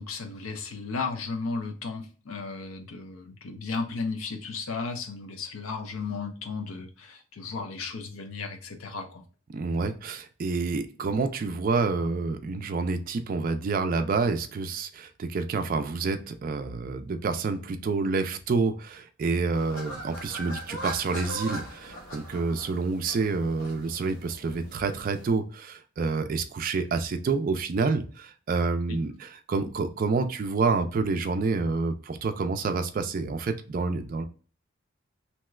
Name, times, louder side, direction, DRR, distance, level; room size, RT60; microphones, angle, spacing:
voice 1, 0.0-9.2 28.9-29.0, left 4 dB, 85° left, 5 dB, 0.6 m, -34 dB
voice 2, 9.5-34.2, right 4 dB, 40° right, 8 dB, 0.3 m, -28 dB
sound 1, 19.5-25.3, right 1 dB, 65° left, 1.2 m, -41 dB
2.9 x 2.3 x 3.1 m, 0.38 s
head